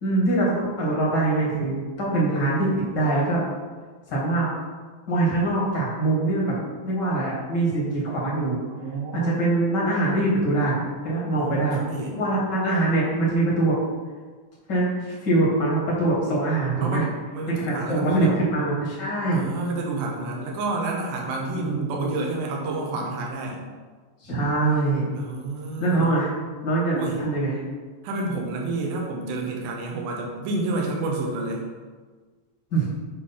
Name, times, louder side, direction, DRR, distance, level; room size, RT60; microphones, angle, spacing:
voice 1, 0.0-3.4 4.1-4.5 5.1-6.5 6.8-8.6 9.1-11.8 12.2-13.8 14.7-17.0 17.5-19.4 21.5-22.1 24.2-25.1 25.8-26.3 26.6-27.5 32.7-32.9, right 2 dB, 45° left, -5 dB, 1.5 m, -23 dB
voice 2, 8.7-9.4 11.4-12.1 16.8-17.1 17.3-18.4 19.3-23.6 25.1-26.1 26.9-27.2 28.0-31.6, right 2 dB, 80° right, -1 dB, 2.8 m, -29 dB
8.5 x 3.2 x 5.6 m, 1.4 s
omnidirectional pair, 4.2 m